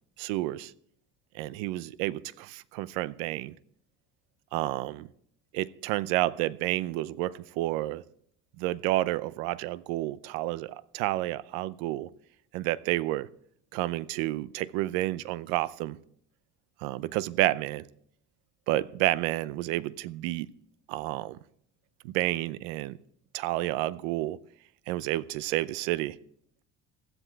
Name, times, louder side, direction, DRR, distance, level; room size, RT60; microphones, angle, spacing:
voice 1, 0.2-0.7 1.3-3.5 4.5-5.1 5.5-8.0 8.6-12.1 12.5-13.3 13.7-16.0 16.8-17.9 18.7-20.5 20.9-21.4 22.0-23.0 23.3-24.4 24.9-26.2, right 16 dB, 90° right, 0.7 m, -30 dB
16.0 x 11.0 x 4.6 m
cardioid pair, 125°, 31 cm